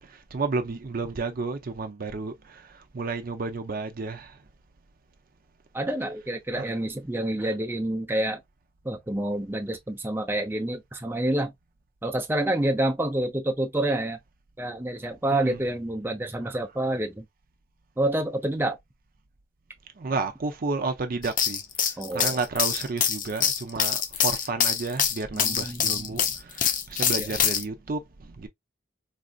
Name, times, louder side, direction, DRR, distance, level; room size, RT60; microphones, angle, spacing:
voice 1, 0.0-4.4 6.6-6.7 15.3-15.6 20.0-28.5, right 3 dB, 50° right, 0.6 m, -32 dB
voice 2, 5.7-8.4 8.8-11.5 12.0-14.2 14.6-17.2 18.0-18.8 22.0-22.4 25.3-26.2 27.2-27.3, right 1 dB, 10° right, 0.6 m, -28 dB
sound 1, 21.2-27.6, left 8 dB, 45° left, 0.6 m, -25 dB
4.0 x 2.6 x 2.3 m
head